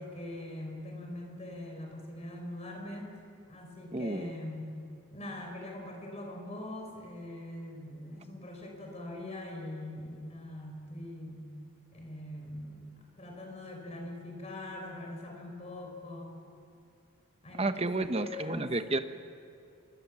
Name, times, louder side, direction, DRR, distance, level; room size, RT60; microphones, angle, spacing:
voice 1, 0.0-3.1 3.5-4.8 5.1-11.4 11.9-16.4 17.4-18.7, left 1 dB, 30° left, 2 dB, 4.7 m, -42 dB
voice 2, 3.9-4.3 17.6-19.0, right 2 dB, 30° right, 10 dB, 0.9 m, -31 dB
24.5 x 23.5 x 7.4 m, 2.4 s
head